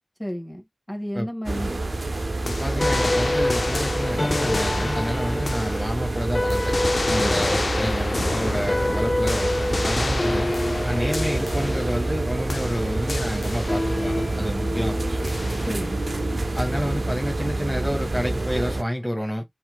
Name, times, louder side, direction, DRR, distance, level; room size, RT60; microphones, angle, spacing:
voice 1, 0.2-1.7 7.1-7.5 15.7-16.0, equal, 15° left, 1.7 m, -32 dB
sound 1, 1.4-18.8, right 2 dB, 90° right, 0.5 m, -27 dB
sound 2, 2.5-6.2 6.5-12.2 12.5-14.1 15.3-16.0, left 2 dB, 80° left, 0.3 m, -30 dB
voice 2, 2.5-6.8 7.1-10.5 10.8-15.4 16.5-19.4, equal, 10° right, 1.5 m, -29 dB
sound 3, 2.8-17.3, left 1 dB, 55° left, 0.7 m, -29 dB
5.6 x 3.0 x 2.3 m
wide cardioid pair, 45°, 0 cm